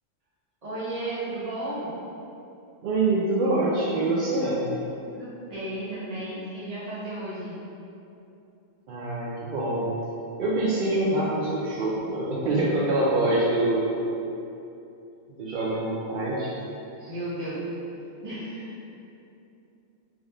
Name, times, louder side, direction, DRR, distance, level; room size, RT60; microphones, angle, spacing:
voice 1, 0.6-1.9 5.1-7.6 17.1-17.6 18.2-18.7, right 1 dB, 30° right, -10 dB, 1.2 m, -34 dB
voice 2, 2.8-4.7 8.9-9.9 10.4-14.0 15.4-16.5 17.0-17.1, right 2 dB, 60° right, -6 dB, 0.5 m, -25 dB
3.7 x 3.0 x 3.3 m, 2.7 s
omnidirectional pair, 1.3 m